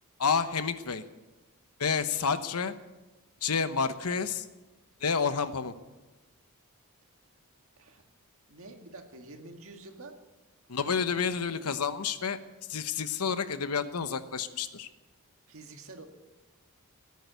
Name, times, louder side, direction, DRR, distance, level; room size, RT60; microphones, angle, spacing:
voice 1, 0.2-1.0 1.8-2.7 3.4-4.4 5.0-5.7 10.7-12.4 12.7-14.9, left 6 dB, 90° left, 11 dB, 1.0 m, -29 dB
voice 2, 8.5-10.2 15.5-16.1, right 2 dB, 65° right, 4 dB, 2.0 m, -47 dB
18.0 x 9.5 x 8.2 m, 1.1 s
head